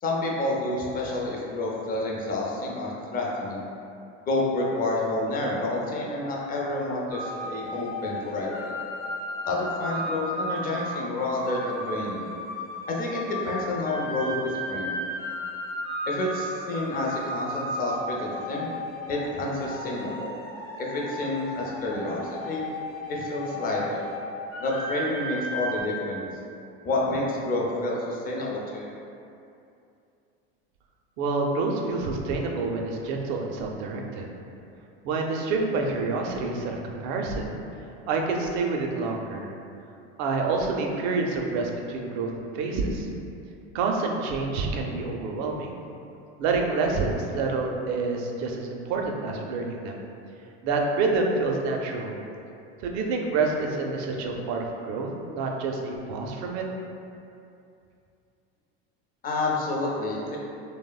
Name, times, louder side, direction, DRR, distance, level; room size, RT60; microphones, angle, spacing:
voice 1, 0.0-3.6 4.3-8.7 9.5-12.3 12.9-15.0 16.1-18.7 19.1-20.3 20.8-22.6 23.1-24.1 24.6-26.3 26.8-28.9 59.2-60.4, left 2 dB, 25° left, -3 dB, 0.5 m, -29 dB
sound 1, 7.1-25.8, equal, 85° left, 0.9 m, -35 dB
voice 2, 31.2-34.3 35.0-37.6 38.1-39.5 40.2-43.1 43.7-45.7 46.4-50.0 50.6-52.2 52.8-56.6, right 3 dB, 55° right, 1 dB, 0.4 m, -28 dB
3.1 x 2.0 x 2.3 m, 2.6 s
supercardioid pair, 100°, 34 cm